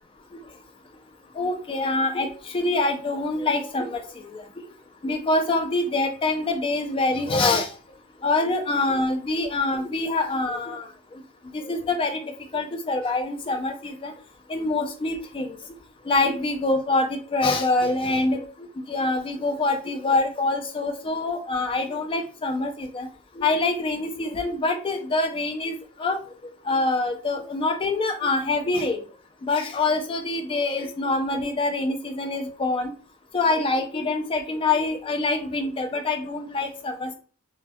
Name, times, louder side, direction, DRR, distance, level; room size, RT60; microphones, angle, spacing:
voice 1, 1.4-4.4 5.0-7.7 8.2-10.9 11.1-11.2 11.5-12.2 12.5-14.1 14.5-15.6 16.1-18.5 18.9-23.1 23.4-26.2 26.7-29.0 29.4-32.9 33.3-37.1, left 2 dB, 25° left, 6 dB, 0.3 m, -25 dB
2.2 x 2.1 x 2.6 m, 0.38 s
head